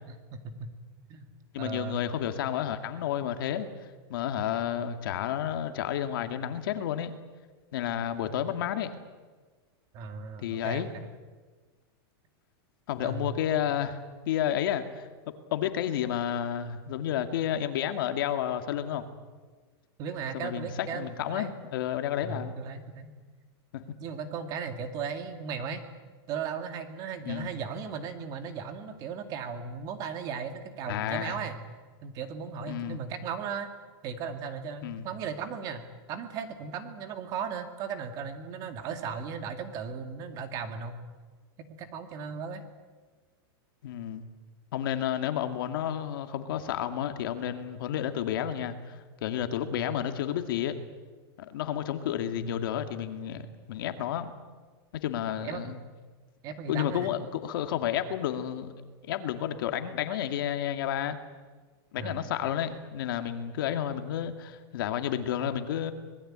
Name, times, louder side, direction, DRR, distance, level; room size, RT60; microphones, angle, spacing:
voice 1, 0.1-0.7 1.1-1.3 1.6-2.0 9.9-10.9 13.0-13.4 20.0-21.6 22.2-23.1 24.0-25.8 26.3-31.6 32.0-33.7 34.0-41.0 41.7-42.6 49.7-50.0 52.3-52.6 55.4-55.7 56.4-57.1 62.0-62.3, right 6 dB, 30° right, 7 dB, 2.2 m, -37 dB
voice 2, 1.5-3.7 4.1-7.1 7.7-8.9 10.4-10.9 12.9-14.0 14.3-15.1 15.5-19.0 20.3-22.5 23.7-23.9 27.2-27.5 30.9-31.4 32.7-33.0 34.8-35.1 43.8-44.2 44.7-50.8 51.4-54.3 55.0-55.8 56.7-58.7 59.1-61.2 61.9-65.9, left 10 dB, 60° left, 8 dB, 2.2 m, -31 dB
25.5 x 20.0 x 8.9 m, 1.4 s
supercardioid pair, 170°, 13 cm